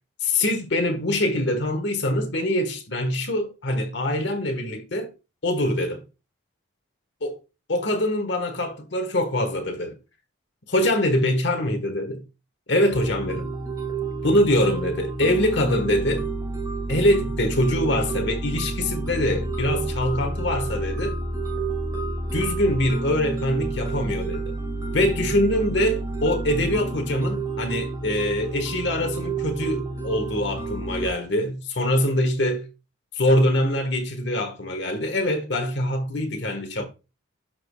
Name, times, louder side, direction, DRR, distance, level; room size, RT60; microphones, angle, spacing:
voice 1, 0.2-5.1 5.4-6.0 7.2-7.3 7.7-9.9 10.7-12.2 12.7-13.5 14.2-16.3 16.9-21.2 22.3-24.5 24.9-32.7 33.2-36.9, left 1 dB, 60° left, 1.3 m, -24 dB
sound 1, 12.9-31.1, right 3 dB, 20° right, 1.9 m, -30 dB
12.0 x 4.9 x 2.2 m
head